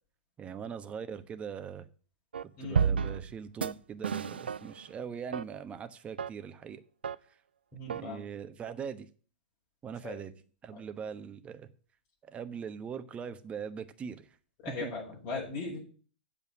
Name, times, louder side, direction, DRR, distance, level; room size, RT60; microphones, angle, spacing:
voice 1, 0.4-1.9 2.6-6.8 7.9-9.1 9.8-10.3 10.6-11.7 12.2-14.3 14.8-14.9, right 7 dB, 25° right, 10 dB, 1.1 m, -41 dB
sound 1, 2.3-2.4 2.7-3.3 3.6-3.7 4.0-4.8 5.3-5.4 6.2-6.3 7.0-7.1 7.9-8.0, right 7 dB, 90° right, 0.5 m, -30 dB
voice 2, 2.6-3.0 7.7-8.2 10.0-10.2 10.7-10.8 14.6-15.8, left 3 dB, 50° left, -4 dB, 5.9 m, -38 dB
8.3 x 7.1 x 7.0 m, 0.41 s
hypercardioid pair, 115°, 5 cm